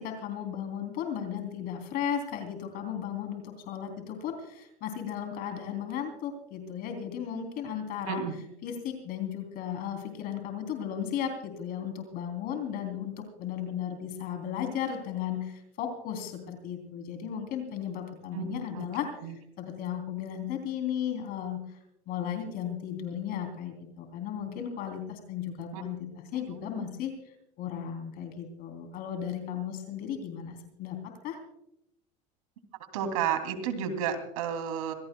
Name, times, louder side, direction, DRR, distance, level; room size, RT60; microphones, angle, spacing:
voice 1, 0.0-8.2 8.6-21.8 22.1-26.0 26.3-31.4, left 9 dB, 60° left, 5 dB, 3.3 m, -35 dB
voice 2, 18.3-18.9 19.2-19.3 25.7-25.8 32.9-34.9, right 8 dB, 90° right, 7 dB, 2.9 m, -31 dB
26.5 x 17.0 x 2.3 m, 0.81 s
supercardioid pair, 105°, 17 cm